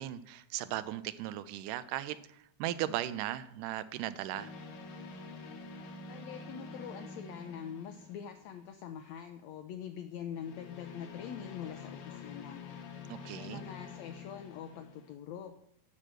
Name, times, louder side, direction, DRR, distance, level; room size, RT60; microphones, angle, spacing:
voice 1, 0.0-4.5 13.1-13.6, right 13 dB, 80° right, 14 dB, 2.1 m, -37 dB
sound 1, 4.3-8.8 10.3-15.1, left 4 dB, 60° left, 1.6 m, -47 dB
voice 2, 6.1-12.6 13.3-15.5, left 8 dB, 80° left, 7 dB, 1.6 m, -44 dB
8.6 x 6.4 x 7.5 m, 0.70 s
omnidirectional pair, 3.8 m